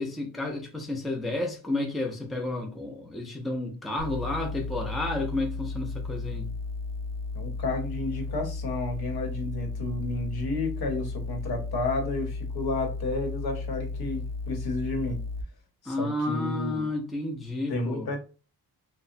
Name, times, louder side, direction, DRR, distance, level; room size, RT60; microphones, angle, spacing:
voice 1, 0.0-6.5 15.9-18.1, left 2 dB, ahead, 0.3 m, -31 dB
sound 1, 4.0-15.4, left 3 dB, 80° right, 0.5 m, -34 dB
voice 2, 7.3-15.2 15.8-16.8 17.7-18.2, left 2 dB, 85° left, 0.9 m, -31 dB
2.8 x 2.0 x 2.5 m
wide cardioid pair, 145°, 37 cm